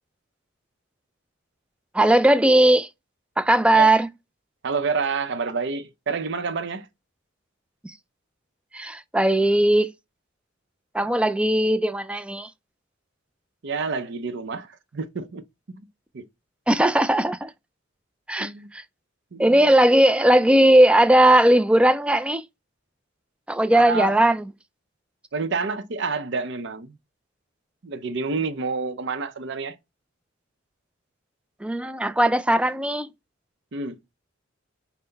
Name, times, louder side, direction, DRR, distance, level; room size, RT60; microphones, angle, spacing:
voice 1, 1.9-2.9 3.4-4.1 7.8-7.9 8.7-9.9 10.9-12.5 16.7-17.5 18.3-18.8 19.4-22.4 23.5-24.5 31.6-33.1, right 1 dB, 5° right, 0.3 m, -18 dB
voice 2, 4.6-6.9 11.0-11.2 13.6-15.4 16.1-16.2 18.4-18.7 19.3-19.5 23.7-24.1 25.3-27.0 27.8-29.8 33.7-34.0, right 4 dB, 60° right, 0.6 m, -28 dB
5.7 x 2.1 x 3.9 m
head